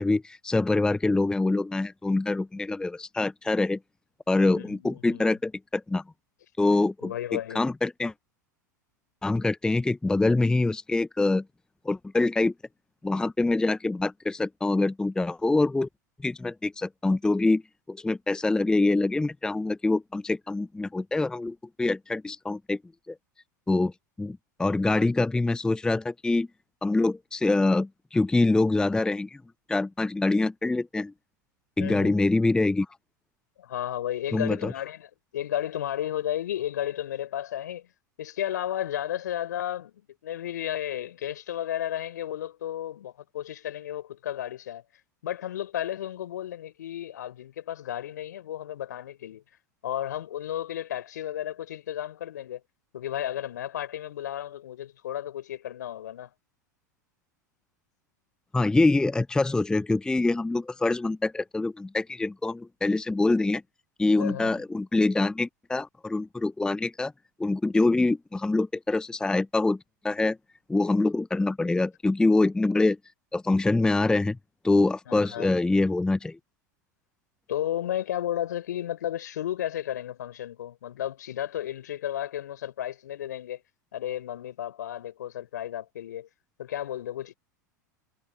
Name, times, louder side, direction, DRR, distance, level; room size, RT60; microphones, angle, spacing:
voice 1, 0.0-3.8 4.3-6.0 6.6-8.1 9.2-11.4 11.8-12.5 13.0-15.9 16.2-17.6 17.9-22.8 23.1-23.2 23.7-23.9 24.2-26.5 26.8-29.4 29.7-31.1 31.8-32.9 34.3-34.7 58.5-63.6 64.0-67.1 67.4-69.8 70.0-70.4 70.7-73.0 73.3-74.4 74.6-76.4, left 2 dB, 5° left, 0.7 m, -25 dB
voice 2, 4.5-5.2 7.0-7.6 31.8-32.2 33.6-37.9 38.2-44.8 45.2-49.4 49.8-52.6 52.9-56.3 64.2-64.5 75.1-75.5 77.5-83.6 83.9-86.3 86.6-87.3, left 11 dB, 70° left, 4.7 m, -33 dB
figure-of-eight pair, 85°, 10 cm